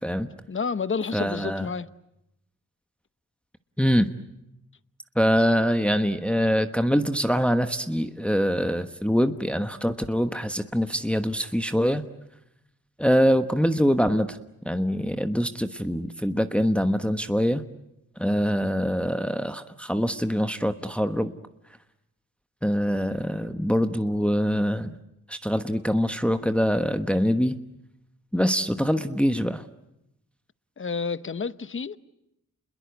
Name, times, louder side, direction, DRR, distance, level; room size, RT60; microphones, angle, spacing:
voice 1, 0.5-1.9 30.8-32.0, left 5 dB, 40° left, 0.9 m, -30 dB
voice 2, 1.1-1.7 3.8-4.1 5.1-12.0 13.0-14.4 14.6-17.6 18.2-21.3 22.6-25.0 25.3-27.6 28.3-29.6, equal, 5° left, 1.2 m, -24 dB
29.0 x 21.5 x 8.4 m
cardioid pair, 65°, 33 cm